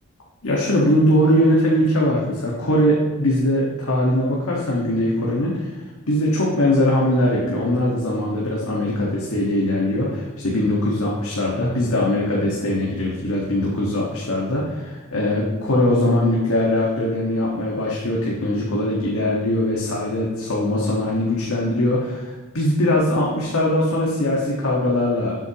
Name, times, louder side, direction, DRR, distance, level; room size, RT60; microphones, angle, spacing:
voice 1, 0.4-25.3, left 1 dB, 80° left, -4 dB, 1.6 m, -21 dB
12.0 x 8.1 x 3.0 m, 1.3 s
head